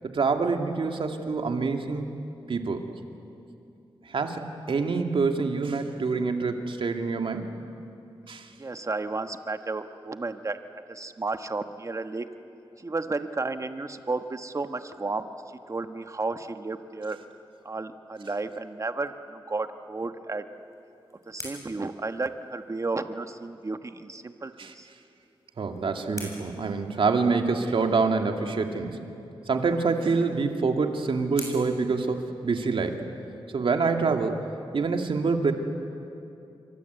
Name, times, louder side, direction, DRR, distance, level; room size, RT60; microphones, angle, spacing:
voice 1, 0.1-2.1 2.5-2.8 4.0-7.5 8.3-8.5 24.6-24.7 25.6-29.0 29.5-33.0 33.5-34.4 34.7-35.5, right 4 dB, 70° right, 4 dB, 2.3 m, -26 dB
voice 2, 8.6-10.6 10.9-12.3 12.8-15.3 15.7-17.2 17.6-20.5 21.3-24.9, right 3 dB, 35° right, 8 dB, 1.3 m, -32 dB
sound 1, 20.5-23.0 25.1-27.5 29.7-32.9, left 2 dB, 35° left, 7.3 m, -47 dB
28.0 x 24.0 x 8.2 m, 2.7 s
cardioid pair, 70°, 9 cm